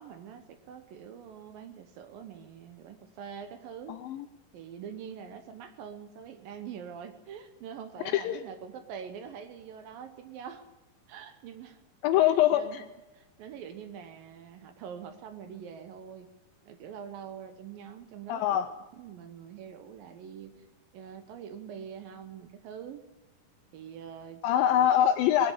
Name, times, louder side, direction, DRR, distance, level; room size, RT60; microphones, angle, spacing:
voice 1, 0.0-4.0 4.5-10.7 11.1-11.8 12.5-12.8 13.1-16.3 16.7-20.7 20.9-23.1 23.7-24.4 24.8-24.9, right 8 dB, 70° right, 8 dB, 2.5 m, -44 dB
voice 2, 3.9-4.3 8.1-8.4 12.0-12.8 18.3-18.7 24.4-25.5, left 11 dB, 80° left, 9 dB, 2.1 m, -24 dB
20.5 x 7.7 x 8.6 m, 1.1 s
omnidirectional pair, 4.6 m